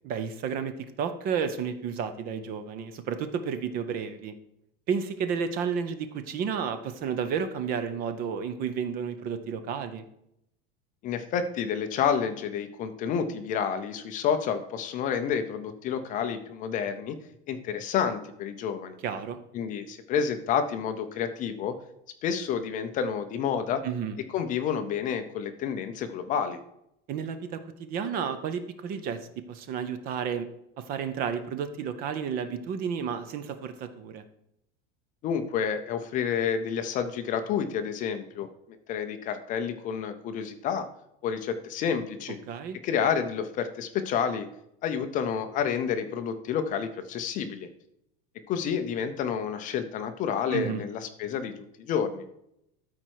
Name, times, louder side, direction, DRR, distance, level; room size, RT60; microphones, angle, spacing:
voice 1, 0.0-4.3 4.9-10.0 19.0-19.4 23.8-24.2 27.1-29.2 29.5-30.5 30.8-34.2 42.5-42.8 50.5-50.8, right 7 dB, 30° right, 10 dB, 0.5 m, -31 dB
voice 2, 11.0-17.2 17.5-19.0 19.5-21.7 22.2-23.8 24.3-26.6 35.2-38.5 38.9-40.9 41.2-42.4 42.8-44.5 44.8-47.7 48.5-51.5 51.8-52.2, left 7 dB, 25° left, 8 dB, 0.5 m, -29 dB
13.0 x 4.4 x 4.6 m, 0.79 s
cardioid pair, 175°, 30 cm